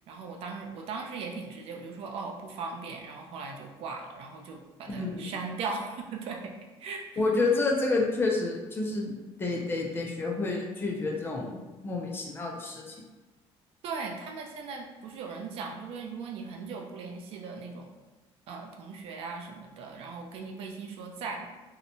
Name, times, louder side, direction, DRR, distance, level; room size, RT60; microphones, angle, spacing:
voice 1, 0.1-6.5 6.8-7.2 13.8-17.9 18.5-21.5, right 4 dB, 60° right, 2 dB, 0.4 m, -38 dB
voice 2, 4.9-5.2 7.2-13.0, left 3 dB, 20° left, -1 dB, 0.3 m, -29 dB
2.7 x 2.1 x 2.6 m, 1.2 s
cardioid pair, 165°, 11 cm